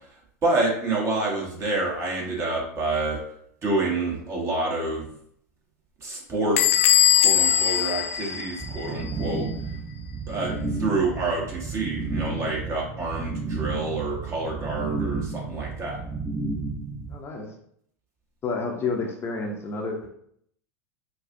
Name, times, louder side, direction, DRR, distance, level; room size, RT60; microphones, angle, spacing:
voice 1, 0.4-3.2 3.6-5.1 6.0-9.5 10.3-16.0, right 2 dB, 35° right, -2 dB, 1.4 m, -28 dB
Bell / Squeak, 6.6-9.1, left 11 dB, 60° left, 0.4 m, -21 dB
sound 1, 8.6-17.1, right 4 dB, 15° right, 0.9 m, -32 dB
voice 2, 17.1-17.5 18.4-20.1, left 4 dB, 30° left, -1 dB, 0.8 m, -29 dB
4.7 x 2.4 x 2.6 m, 0.68 s
hypercardioid pair, 90°, 8 cm